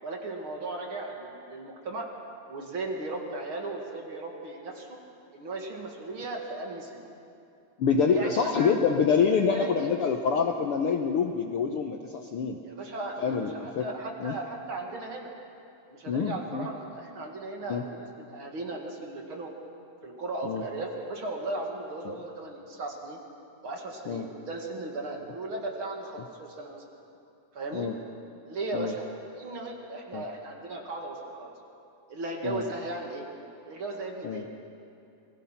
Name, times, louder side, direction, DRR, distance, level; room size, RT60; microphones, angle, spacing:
voice 1, 0.0-2.1 2.5-5.0 5.3-7.1 8.1-8.7 9.5-9.9 12.6-15.3 15.9-19.5 20.0-23.2 23.6-26.8 27.5-27.9 28.5-29.1 29.3-31.5 32.1-33.2 33.7-34.5, right 2 dB, 45° right, 1 dB, 2.7 m, -36 dB
voice 2, 7.8-12.6 13.2-13.9 14.2-14.3 16.1-16.7 17.7-17.8 20.4-20.6 24.1-24.3 27.7-27.9 28.7-28.9 30.1-30.2 32.4-32.6 34.2-34.4, left 6 dB, 65° left, 4 dB, 1.5 m, -26 dB
28.5 x 21.0 x 5.8 m, 2.7 s
omnidirectional pair, 3.5 m